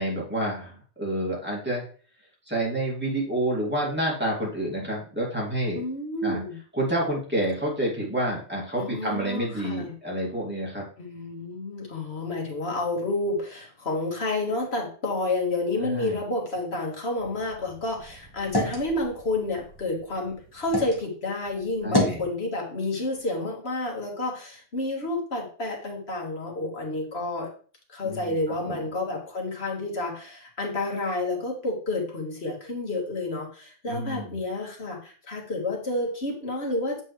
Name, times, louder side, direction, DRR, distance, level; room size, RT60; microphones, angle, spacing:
voice 1, 0.0-1.8 2.5-5.8 6.2-6.4 6.7-10.8 15.8-16.2 21.8-22.2 28.0-28.4 28.7-28.8 33.9-34.3, right 1 dB, 10° right, -4 dB, 2.3 m, -28 dB
voice 2, 5.7-6.6 8.8-9.9 11.0-27.5 27.9-37.0, left 2 dB, 60° left, 0 dB, 1.9 m, -30 dB
sound 1, 17.2-21.0 21.4-22.3, left 1 dB, 20° left, 1.4 m, -31 dB
7.8 x 4.5 x 3.2 m, 0.41 s
omnidirectional pair, 1.2 m